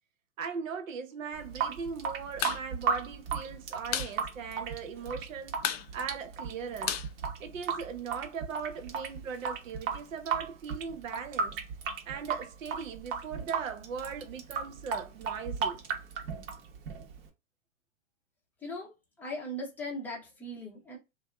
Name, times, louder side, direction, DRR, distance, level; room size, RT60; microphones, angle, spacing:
voice 1, 0.4-5.6 5.9-7.0 7.4-11.6 12.1-15.8, right 6 dB, 80° right, 0.8 m, -39 dB
Water tap faucet / Sink (filling or washing) / Drip, 1.3-17.3, right 6 dB, 45° right, 0.9 m, -35 dB
sound 1, 2.3-2.6 2.9-3.0 3.3-4.2 4.5-4.6 4.8-5.2 5.6-8.0, left 10 dB, 50° left, 0.5 m, -34 dB
voice 2, 18.6-21.0, left 1 dB, 5° left, 0.6 m, -39 dB
2.7 x 2.2 x 2.3 m
hypercardioid pair, 135°, 39 cm